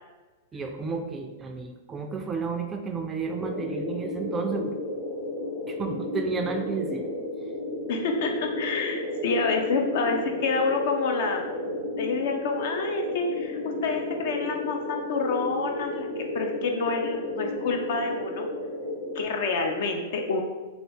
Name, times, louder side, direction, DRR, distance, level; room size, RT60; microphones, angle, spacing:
voice 1, 0.5-4.8 5.7-7.1, right 5 dB, 20° right, 4 dB, 0.3 m, -32 dB
sound 1, 3.3-19.2, left 1 dB, 85° left, 0.9 m, -33 dB
voice 2, 7.9-11.4 12.0-18.5 19.1-20.4, left 4 dB, 60° left, 3 dB, 0.5 m, -28 dB
2.8 x 2.7 x 3.2 m, 1.2 s
hypercardioid pair, 115°, 0 cm